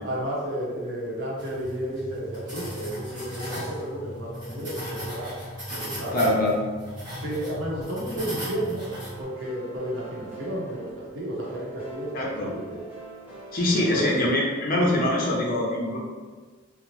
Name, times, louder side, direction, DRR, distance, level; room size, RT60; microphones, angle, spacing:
voice 1, 0.0-5.3 5.7-6.2 7.2-8.9 9.2-12.8 13.7-14.1, equal, 70° right, -5 dB, 0.8 m, -32 dB
sound 1, 1.4-9.2, equal, 25° right, 1.1 m, -37 dB
voice 2, 6.1-6.6 12.1-12.5 13.5-16.0, left 1 dB, 45° left, -3 dB, 0.6 m, -23 dB
sound 2, 8.8-14.7, right 4 dB, 5° right, 0.6 m, -43 dB
2.8 x 2.0 x 3.0 m, 1.5 s
head